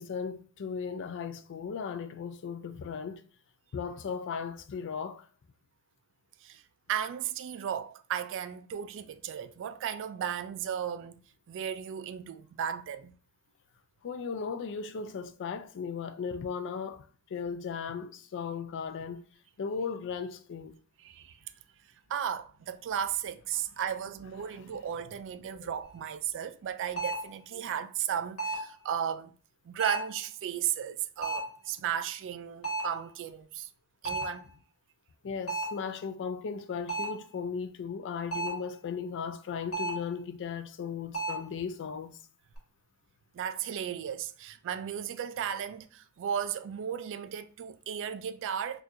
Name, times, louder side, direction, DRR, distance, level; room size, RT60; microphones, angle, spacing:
voice 1, 0.0-3.2 3.7-5.2 14.0-17.0 17.3-19.2 19.6-20.7 24.5-24.6 25.6-25.7 35.2-42.1, left 6 dB, 55° left, 0.4 m, -36 dB
voice 2, 6.9-11.2 11.5-13.2 21.0-21.4 22.1-29.4 29.7-33.7 34.0-34.5 43.3-48.8, right 9 dB, 55° right, 0.3 m, -35 dB
sound 1, 25.9-26.0 27.0-27.4 28.4-28.8 29.8-30.2 31.2-31.6 32.6-33.0 34.1-34.5 35.5-35.8 36.9-37.3 38.3-38.7 39.7-40.1 41.1-41.5, right 3 dB, 90° left, 1.4 m, -33 dB
4.2 x 2.4 x 2.5 m
head